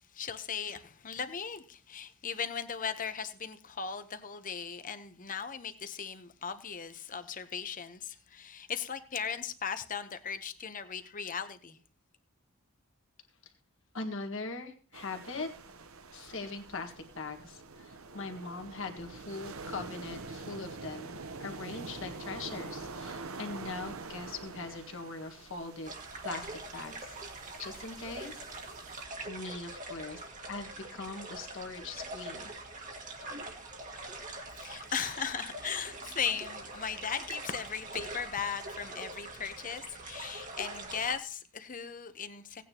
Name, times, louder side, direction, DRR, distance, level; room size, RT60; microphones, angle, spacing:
voice 1, 0.0-11.8 34.5-42.6, left 7 dB, 35° left, 0.9 m, -37 dB
voice 2, 13.9-15.5 16.1-21.1 21.4-25.9 26.2-27.1 27.6-28.4 29.3-30.2 30.5-32.5, left 3 dB, 60° left, 1.7 m, -41 dB
sound 1, 14.9-29.0, right 3 dB, 70° right, 0.9 m, -45 dB
sound 2, 25.8-41.2, right 2 dB, 35° right, 1.7 m, -44 dB
17.5 x 9.3 x 3.0 m
head